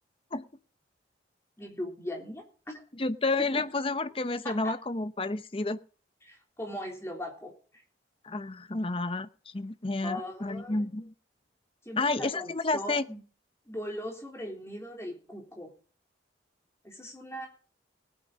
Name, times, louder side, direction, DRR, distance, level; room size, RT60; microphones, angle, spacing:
voice 1, 1.6-2.8 3.4-3.5 4.4-4.7 6.2-7.8 10.0-10.9 11.8-13.2 13.7-15.7 16.8-17.5, left 1 dB, 15° left, 1 dB, 3.3 m, -39 dB
voice 2, 3.0-5.8 8.2-9.3 9.5-11.1 12.0-13.0, left 3 dB, 30° left, 13 dB, 0.7 m, -30 dB
19.0 x 8.8 x 3.9 m, 0.39 s
head